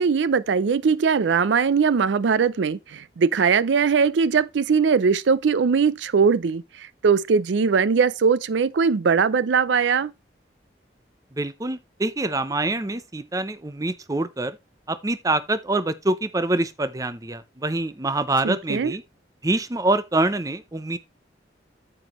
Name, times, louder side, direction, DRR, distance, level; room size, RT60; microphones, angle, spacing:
voice 1, 0.0-10.1 18.4-18.9, right 5 dB, 80° right, 0.4 m, -20 dB
voice 2, 11.4-14.6 14.9-19.0 19.4-21.0, right 2 dB, 20° right, 0.6 m, -25 dB
9.2 x 7.9 x 3.0 m
head